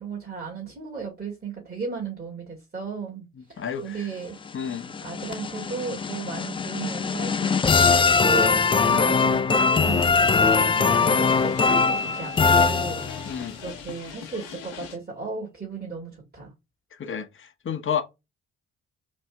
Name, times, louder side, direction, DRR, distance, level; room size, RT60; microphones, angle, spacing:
voice 1, 0.0-4.3 5.0-16.5, right 5 dB, 25° right, 2.6 m, -35 dB
voice 2, 3.6-4.1 4.5-4.9 8.9-9.2 13.2-13.6 17.0-18.0, left 7 dB, 30° left, 1.0 m, -31 dB
sound 1, 4.5-13.4, left 5 dB, 15° left, 0.4 m, -21 dB
sound 2, 9.8-15.0, left 7 dB, 70° left, 1.2 m, -41 dB
4.2 x 3.1 x 3.5 m
figure-of-eight pair, 45°, 38 cm